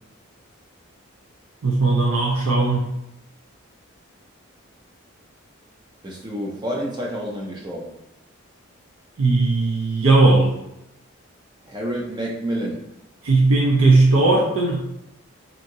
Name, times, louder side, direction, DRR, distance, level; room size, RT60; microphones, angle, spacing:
voice 1, 1.6-2.8 9.2-10.5 13.2-14.8, right 3 dB, 80° right, -2 dB, 0.5 m, -17 dB
voice 2, 6.0-7.9 11.6-12.8, equal, 20° right, -3 dB, 0.4 m, -29 dB
2.9 x 2.6 x 2.6 m, 0.88 s
head